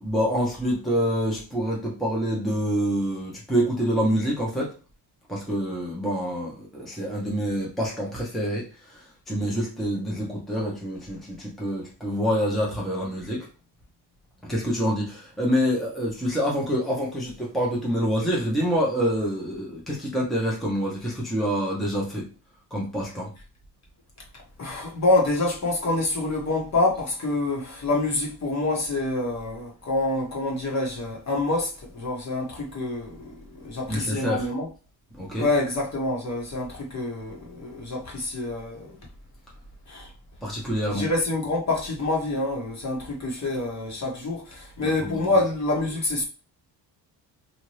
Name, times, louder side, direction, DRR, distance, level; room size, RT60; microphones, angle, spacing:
voice 1, 0.0-4.7 5.3-13.5 14.5-22.3 22.7-23.3 33.9-34.5 35.2-35.5 40.4-41.1 44.8-45.3, equal, ahead, 0.9 m, -26 dB
voice 2, 24.6-33.3 33.6-34.7 35.4-39.0 39.9-40.1 40.9-46.2, left 2 dB, 40° left, 1.3 m, -26 dB
2.9 x 2.6 x 3.1 m
cardioid pair, 100°, 44 cm